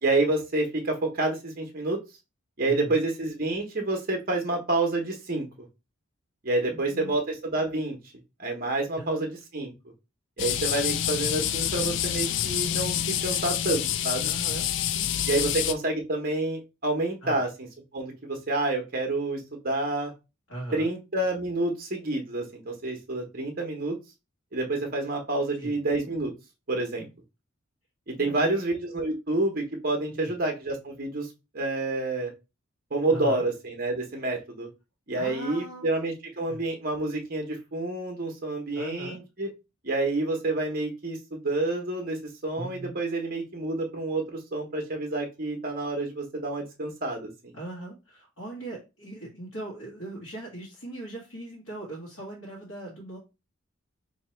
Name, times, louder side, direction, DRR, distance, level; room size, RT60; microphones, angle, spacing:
voice 1, 0.0-2.0 2.6-5.5 6.4-8.0 8.4-9.7 10.4-14.3 15.3-17.7 17.9-20.1 20.7-24.0 24.5-26.3 26.7-27.1 28.1-31.3 31.5-32.3 32.9-34.7 35.1-39.5 39.8-42.2 42.4-47.6, right 2 dB, 45° right, 3 dB, 0.9 m, -28 dB
voice 2, 2.7-3.0 6.7-7.1 9.0-9.2 14.2-15.2 17.2-17.4 20.5-20.9 25.6-25.8 28.2-28.6 30.1-30.4 33.1-33.4 35.2-35.9 36.5-36.6 38.7-39.2 42.6-42.9 47.5-53.2, right 2 dB, 80° left, -4 dB, 1.5 m, -39 dB
sound 1, 10.4-15.7, left 10 dB, 60° left, 0.3 m, -27 dB
2.9 x 2.9 x 4.3 m, 0.27 s
head